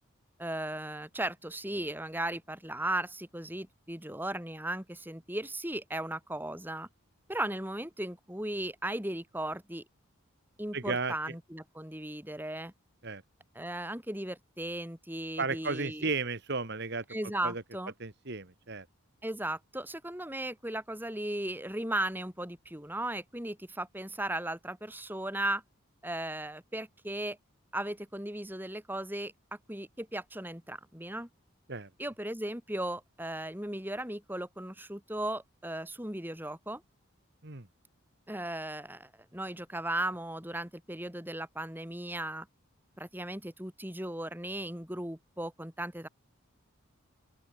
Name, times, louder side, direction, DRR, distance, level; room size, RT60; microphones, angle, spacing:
voice 1, 0.4-6.9 7.3-9.8 10.6-12.7 13.5-16.1 17.1-17.9 19.2-25.6 26.0-27.4 27.7-29.3 29.7-31.3 32.0-36.8 38.3-42.5 43.0-46.1, right 1 dB, 10° right, 3.0 m, -36 dB
voice 2, 10.7-11.1 13.0-13.2 15.4-17.0 17.4-17.6 18.0-18.9 31.7-31.9 37.4-37.7, right 4 dB, 50° right, 1.7 m, -34 dB
open air
head